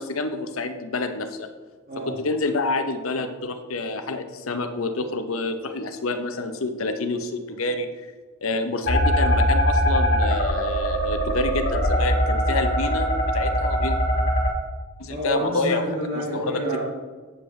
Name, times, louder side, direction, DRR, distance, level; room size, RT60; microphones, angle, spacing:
voice 1, 0.0-1.5 2.1-7.9 8.4-14.0 15.0-15.8 16.3-16.6, left 3 dB, 75° left, 7 dB, 0.8 m, -28 dB
sound 1, 8.8-14.5, equal, 50° left, 1.8 m, -21 dB
voice 2, 15.1-16.8, right 1 dB, 45° right, -7 dB, 2.0 m, -29 dB
8.4 x 7.7 x 3.2 m, 1.4 s
head